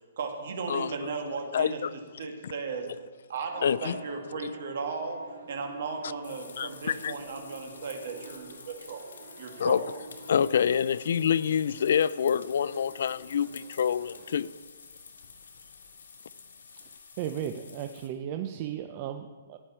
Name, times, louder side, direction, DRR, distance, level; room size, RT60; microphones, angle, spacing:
voice 1, 0.2-2.9 3.3-5.2 5.5-9.0 9.4-9.8, right 4 dB, 50° right, 2.2 m, -36 dB
voice 2, 1.5-1.9 3.6-4.0 4.4-4.5 6.6-7.1 9.6-9.8 10.3-14.5, left 8 dB, 55° left, 0.3 m, -26 dB
sound 1, 3.5-14.4, right 4 dB, 80° right, 2.7 m, -51 dB
sound 2, 6.2-18.1, left 5 dB, 80° left, 2.1 m, -50 dB
voice 3, 17.2-19.6, right 10 dB, 25° right, 0.5 m, -35 dB
15.5 x 10.0 x 4.4 m
hypercardioid pair, 175°, 0 cm